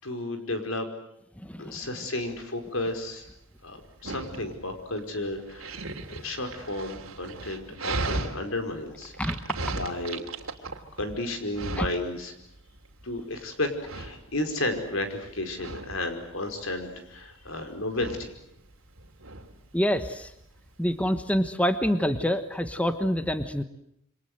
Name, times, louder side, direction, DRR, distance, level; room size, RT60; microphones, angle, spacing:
voice 1, 0.0-0.9 1.6-3.3 3.6-9.1 9.7-10.2 11.0-12.3 13.0-18.3, left 2 dB, 75° left, 7 dB, 5.0 m, -33 dB
voice 2, 1.4-1.8 9.2-9.4 9.7-9.8 11.7-11.9 19.7-20.3 20.8-23.6, equal, 5° left, 9 dB, 1.3 m, -26 dB
Dog, 2.2-21.4, right 3 dB, 90° right, 2.9 m, -38 dB
28.0 x 25.5 x 8.0 m, 0.77 s
head